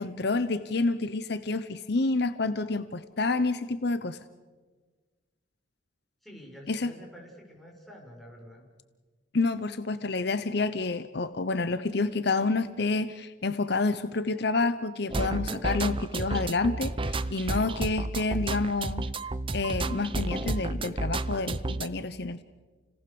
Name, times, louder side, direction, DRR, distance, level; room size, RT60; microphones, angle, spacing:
voice 1, 0.0-4.2 6.7-6.9 9.3-19.1 19.5-22.4, left 3 dB, 65° left, 12 dB, 0.9 m, -28 dB
voice 2, 6.2-8.7, equal, ahead, -2 dB, 6.3 m, -48 dB
sound 1, 15.1-21.9, right 2 dB, 30° right, 0.7 m, -31 dB
30.0 x 18.5 x 7.0 m, 1.4 s
head